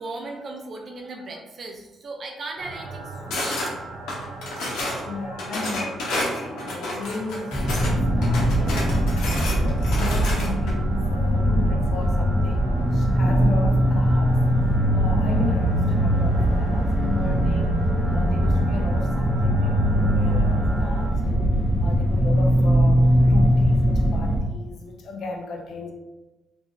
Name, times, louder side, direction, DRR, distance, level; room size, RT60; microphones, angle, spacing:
voice 1, 0.0-3.7, right 2 dB, 50° right, 2 dB, 0.5 m, -37 dB
piano high resonance loop, 2.6-21.1, right 2 dB, 80° right, 1.0 m, -39 dB
sound 1, 3.3-3.7 4.1-5.0 5.4-7.9 8.2-10.7, left 2 dB, 85° left, 0.9 m, -30 dB
voice 2, 5.1-14.4 14.9-21.5 21.8-25.9, left 3 dB, 65° left, 2 dB, 0.5 m, -35 dB
sound 2, 7.5-24.4, equal, 15° left, 0.6 m, -21 dB
2.6 x 2.3 x 3.0 m, 1.1 s
cardioid pair, 90°, 0 cm